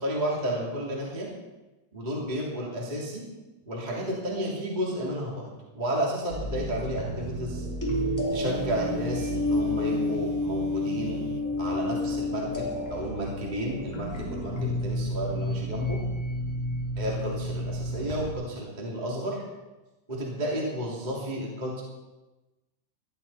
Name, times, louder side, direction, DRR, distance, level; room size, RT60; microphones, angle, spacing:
voice 1, 0.0-1.3 1.9-3.2 3.6-5.5 5.7-7.6 8.3-11.2 11.6-16.0 16.9-19.4 20.1-21.8, equal, 15° right, -3 dB, 1.6 m, -32 dB
sound 1, 6.3-18.3, left 1 dB, 5° left, 1.7 m, -30 dB
Telephone, 8.4-11.5, right 12 dB, 90° right, 2.4 m, -41 dB
17.5 x 13.0 x 4.2 m, 1.1 s
omnidirectional pair, 5.6 m